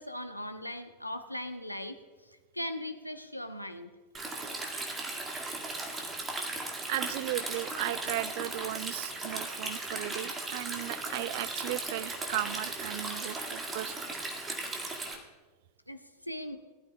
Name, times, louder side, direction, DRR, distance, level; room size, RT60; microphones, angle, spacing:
voice 1, 0.0-2.0 2.2-3.9 15.2-15.3 15.9-16.6, left 1 dB, 90° left, 8 dB, 0.9 m, -39 dB
Stream, 4.1-15.1, right 2 dB, 20° right, 2.0 m, -37 dB
voice 2, 6.9-13.9, right 16 dB, 50° right, 16 dB, 0.4 m, -36 dB
20.0 x 12.5 x 2.3 m, 1.3 s
figure-of-eight pair, 90°, 0 cm